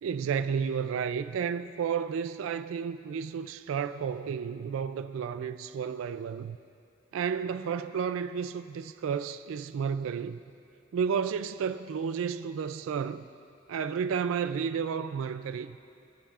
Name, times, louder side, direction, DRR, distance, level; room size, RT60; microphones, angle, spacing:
voice 1, 0.0-6.6 7.1-10.4 10.9-13.3 13.7-15.8, right 7 dB, 75° right, 0.3 m, -32 dB
26.0 x 10.0 x 2.4 m
head